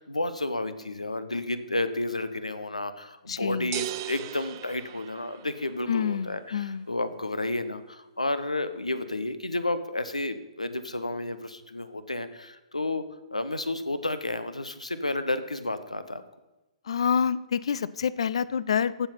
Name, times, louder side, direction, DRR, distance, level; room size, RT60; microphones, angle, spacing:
voice 1, 0.0-13.0 13.3-16.2, left 2 dB, 85° left, 12 dB, 0.8 m, -31 dB
voice 2, 3.3-3.8 5.9-6.9 16.9-19.1, left 7 dB, 55° left, 19 dB, 0.4 m, -27 dB
sound 1, 3.7-5.8, right 14 dB, 35° right, 0.5 m, -37 dB
15.0 x 5.6 x 5.7 m, 1.0 s
figure-of-eight pair, 120°, 4 cm